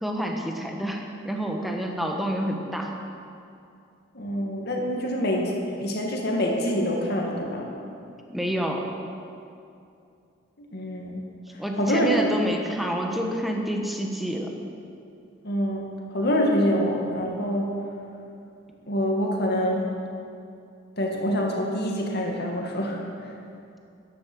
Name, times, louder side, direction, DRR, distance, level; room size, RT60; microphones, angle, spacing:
voice 1, 0.0-2.9 8.3-8.9 11.6-14.5, equal, ahead, 1 dB, 1.3 m, -28 dB
voice 2, 4.1-7.7 10.6-11.3 11.8-12.1 15.4-15.8 16.1-17.8 18.9-19.9 21.0-23.3, equal, 55° left, 0 dB, 2.1 m, -26 dB
13.5 x 10.5 x 6.3 m, 2.6 s
head